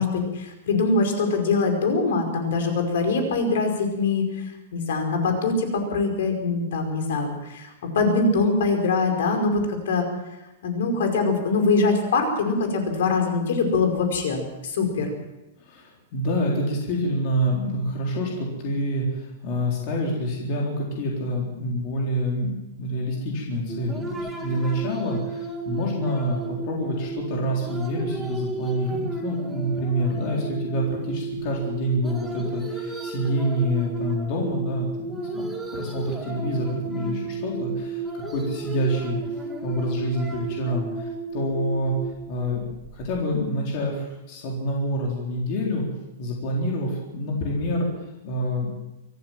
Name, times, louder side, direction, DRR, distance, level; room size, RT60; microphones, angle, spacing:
voice 1, 0.0-10.1 10.6-15.1, left 3 dB, 65° left, 5 dB, 5.1 m, -23 dB
voice 2, 15.6-35.5 35.7-39.2 39.6-41.9 42.3-42.6 42.9-45.8 46.2-47.9 48.2-48.7, equal, 35° left, -2 dB, 4.0 m, -27 dB
sound 1, 23.7-43.2, right 3 dB, 5° right, 2.0 m, -33 dB
24.5 x 14.5 x 7.5 m, 0.97 s
supercardioid pair, 180°, 0 cm